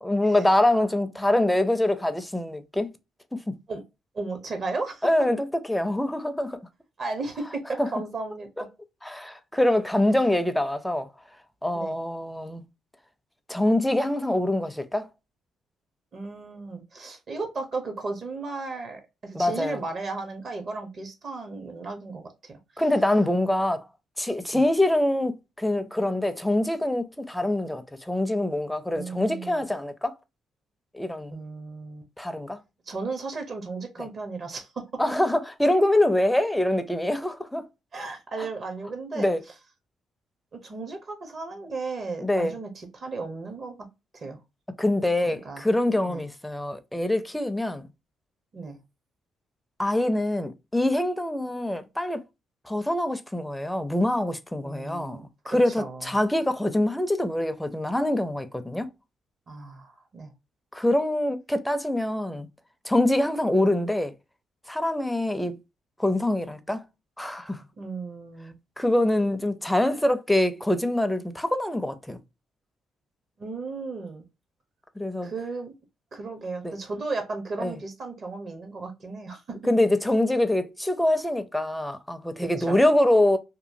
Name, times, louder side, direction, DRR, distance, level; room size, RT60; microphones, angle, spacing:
voice 1, 0.0-2.9 3.3-3.6 5.0-6.6 9.0-11.1 11.6-12.7 13.5-15.1 19.3-19.8 22.8-23.9 24.2-25.3 25.6-30.1 30.9-31.4 32.2-32.6 35.0-37.6 39.1-39.4 42.2-42.6 44.8-47.8 49.8-52.2 52.7-55.2 55.5-58.9 60.7-62.5 62.8-64.1 64.7-65.6 66.0-66.8 67.2-67.6 68.8-72.2 75.0-75.3 76.6-76.8 77.6-77.8 79.6-83.4, left 1 dB, 5° left, 0.4 m, -24 dB
voice 2, 4.1-5.1 7.0-8.5 10.1-10.2 11.7-12.0 16.1-22.6 24.5-24.7 28.9-29.6 31.3-32.0 32.9-34.8 37.9-39.3 40.5-43.9 44.1-44.4 45.2-45.7 46.0-46.2 48.5-48.8 54.6-56.1 59.5-60.3 67.8-68.6 73.4-74.2 75.2-75.7 76.1-79.6 82.3-82.8, right 3 dB, 50° right, 0.8 m, -35 dB
2.9 x 2.3 x 2.6 m
cardioid pair, 90°, 0 cm